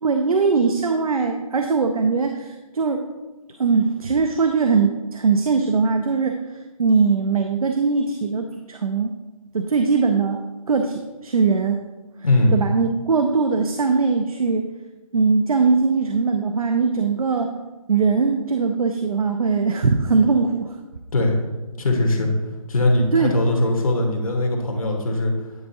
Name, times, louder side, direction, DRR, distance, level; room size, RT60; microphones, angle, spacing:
voice 1, 0.0-3.0 3.6-9.1 9.5-11.8 12.5-14.7 15.1-17.5 17.9-20.7 23.1-23.3, right 4 dB, 75° right, 5 dB, 0.6 m, -21 dB
voice 2, 12.2-12.6 21.1-21.4 21.8-22.3 22.7-25.3, left 1 dB, 70° left, 2 dB, 1.3 m, -20 dB
9.6 x 3.8 x 2.7 m, 1.2 s
figure-of-eight pair, 155°, 19 cm